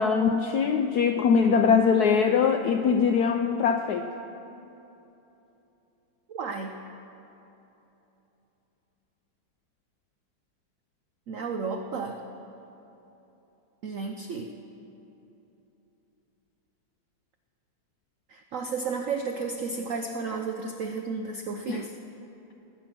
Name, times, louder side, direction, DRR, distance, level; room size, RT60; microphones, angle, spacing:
voice 1, 0.0-4.1 21.7-21.9, left 6 dB, 80° left, 6 dB, 0.8 m, -22 dB
voice 2, 6.3-6.7 11.3-12.2 13.8-14.6 18.3-21.9, right 4 dB, 90° right, 5 dB, 0.7 m, -33 dB
19.5 x 8.2 x 6.0 m, 3.0 s
omnidirectional pair, 2.2 m